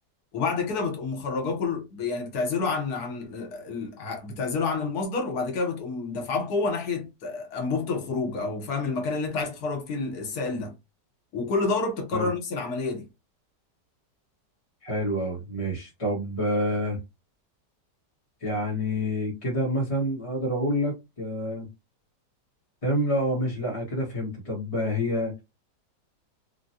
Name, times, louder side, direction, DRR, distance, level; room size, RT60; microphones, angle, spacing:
voice 1, 0.3-10.7 11.3-13.1, left 4 dB, 65° left, 1.4 m, -29 dB
voice 2, 14.8-17.0 18.4-21.7 22.8-25.3, equal, 30° left, 0.7 m, -28 dB
3.6 x 2.2 x 2.7 m
omnidirectional pair, 1.9 m